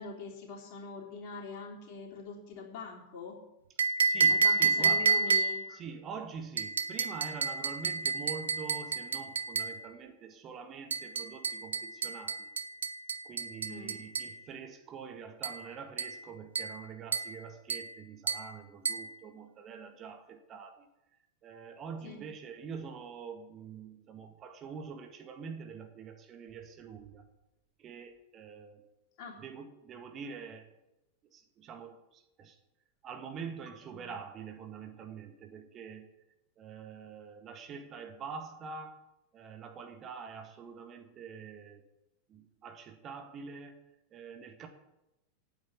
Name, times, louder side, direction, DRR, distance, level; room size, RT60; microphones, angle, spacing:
voice 1, 0.0-3.4 4.3-5.8 13.7-13.9 22.0-22.2 29.2-29.3, left 4 dB, 45° left, -1 dB, 3.6 m, -43 dB
sound 1, 3.8-5.7 6.6-9.8 10.9-14.4 15.4-15.6 16.0-16.2 16.5-16.8 17.1-17.4 17.7-17.9 18.3-18.5 18.8-19.1, right 4 dB, 70° right, 0.7 m, -30 dB
voice 2, 4.0-5.4 5.7-12.5 13.2-20.9 21.4-27.2 27.8-28.9 29.4-30.7 31.3-32.6 33.0-36.1 36.6-39.0 39.3-41.8 42.3-43.8 44.1-44.7, right 6 dB, 30° right, 6 dB, 1.7 m, -45 dB
9.2 x 9.1 x 8.2 m, 0.93 s
figure-of-eight pair, 90°, 0 cm